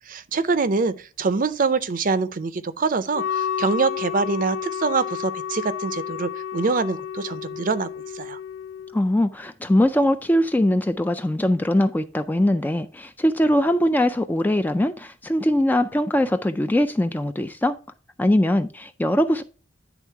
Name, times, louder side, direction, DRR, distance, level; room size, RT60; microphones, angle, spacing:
voice 1, 0.1-8.4, right 4 dB, 45° right, 0.5 m, -25 dB
Wind instrument woodwind instrument, 3.1-9.0, left 8 dB, 85° left, 0.4 m, -31 dB
voice 2, 8.9-17.8 18.2-19.4, left 1 dB, 10° left, 0.3 m, -21 dB
10.0 x 3.5 x 4.5 m
head